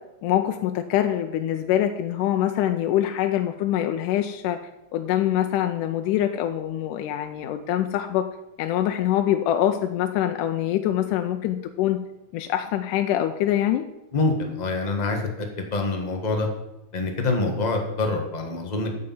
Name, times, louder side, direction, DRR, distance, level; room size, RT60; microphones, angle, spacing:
voice 1, 0.2-4.6 4.9-8.3 8.6-12.0 12.3-13.8, left 11 dB, 80° left, 6 dB, 2.2 m, -24 dB
voice 2, 14.1-16.5 16.9-18.9, left 3 dB, 55° left, 2 dB, 0.4 m, -25 dB
9.5 x 6.6 x 7.6 m, 0.92 s
omnidirectional pair, 3.6 m